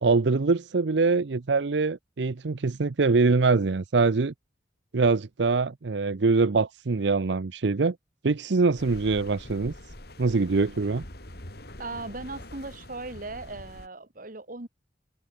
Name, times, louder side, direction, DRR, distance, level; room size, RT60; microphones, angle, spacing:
voice 1, 0.0-4.3 4.9-8.0 8.2-9.7 10.2-11.0, right 4 dB, 75° right, 0.6 m, -23 dB
sound 1, 8.8-13.9, left 1 dB, 60° left, 5.7 m, -44 dB
voice 2, 11.8-14.7, right 3 dB, 50° right, 1.9 m, -38 dB
head